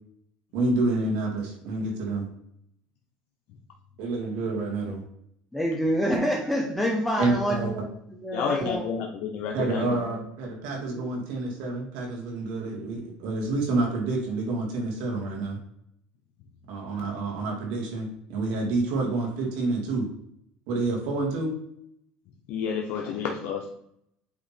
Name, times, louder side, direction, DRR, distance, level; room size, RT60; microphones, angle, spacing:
voice 1, 0.5-2.3 4.0-5.0 7.2-7.7 9.5-15.6 16.7-20.1 20.7-21.5, right 2 dB, 80° right, 0 dB, 2.1 m, -28 dB
voice 2, 5.5-7.9 8.2-8.9, equal, 5° left, -2 dB, 0.8 m, -27 dB
voice 3, 8.3-10.2 22.5-23.7, left 6 dB, 65° left, 1 dB, 0.7 m, -30 dB
8.2 x 2.9 x 4.3 m, 0.74 s
cardioid pair, 125°, 3 cm